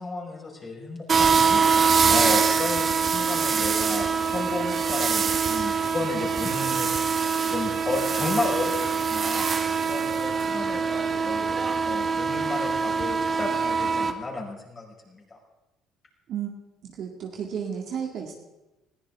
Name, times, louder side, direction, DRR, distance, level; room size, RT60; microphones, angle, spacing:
voice 1, 0.0-8.7 9.0-9.5 9.8-11.5 11.8-15.4, left 3 dB, 30° left, -2 dB, 5.3 m, -33 dB
sound 1, 1.1-14.1, right 5 dB, 35° right, 1.3 m, -24 dB
voice 2, 16.8-18.3, right 8 dB, 60° right, 0 dB, 2.1 m, -32 dB
20.5 x 14.5 x 3.6 m, 1.0 s
cardioid pair, 95°, 0 cm